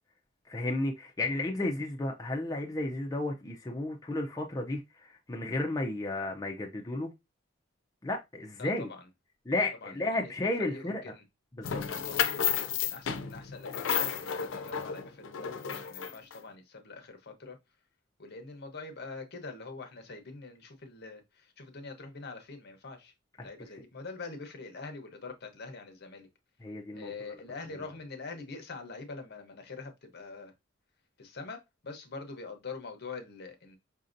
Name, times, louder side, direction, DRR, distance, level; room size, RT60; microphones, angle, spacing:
voice 1, 0.5-7.1 8.0-8.9 9.5-11.0 11.6-11.8 23.4-23.5 26.6-27.1, left 2 dB, 20° left, 0.5 m, -33 dB
voice 2, 8.6-9.1 9.8-11.2 11.9-12.3 12.7-17.6 18.2-23.1 23.4-26.3 26.9-30.5 31.2-33.8, left 4 dB, 55° left, 0.9 m, -44 dB
sound 1, 11.6-16.3, left 8 dB, 80° left, 0.5 m, -32 dB
5.1 x 2.7 x 2.5 m
head